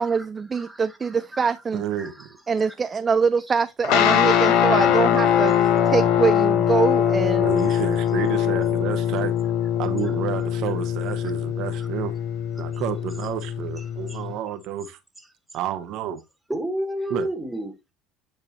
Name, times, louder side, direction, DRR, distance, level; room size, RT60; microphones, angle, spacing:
voice 1, 0.0-1.8 2.5-5.5 5.9-7.6, right 5 dB, 30° right, 0.4 m, -24 dB
voice 2, 0.5-1.5 2.0-2.1 14.1-14.2 16.5-17.8, equal, 5° right, 2.0 m, -31 dB
voice 3, 1.7-2.3 4.8-5.0 7.4-9.3 9.8-12.1 12.6-15.0 15.5-16.2 17.1-17.3, right 10 dB, 65° right, 1.0 m, -30 dB
sound 1, 3.8-14.3, left 9 dB, 70° left, 1.0 m, -22 dB
9.1 x 4.8 x 2.9 m
hypercardioid pair, 80°, 0 cm